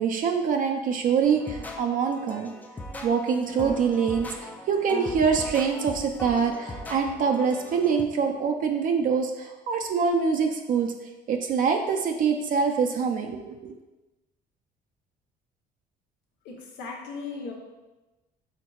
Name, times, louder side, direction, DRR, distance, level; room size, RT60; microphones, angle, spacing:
voice 1, 0.0-2.5 3.0-10.9 11.3-13.7, right 6 dB, 55° right, 4 dB, 0.4 m, -25 dB
sound 1, 1.4-8.0, left 1 dB, 10° left, 0.4 m, -39 dB
voice 2, 16.4-17.5, left 4 dB, 90° left, 0 dB, 0.8 m, -37 dB
4.6 x 3.5 x 2.3 m, 1.1 s
cardioid pair, 110°, 17 cm